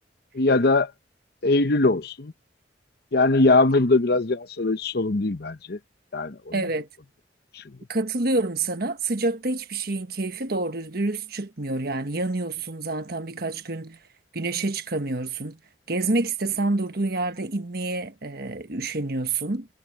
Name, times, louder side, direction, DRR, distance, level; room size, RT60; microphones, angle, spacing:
voice 1, 0.3-0.9 1.4-2.3 3.1-5.8 6.1-6.5 7.5-7.6, left 2 dB, 60° left, 0.9 m, -21 dB
voice 2, 6.5-6.9 7.9-14.0 14.3-15.6 15.9-19.7, right 2 dB, 55° right, 1.4 m, -27 dB
head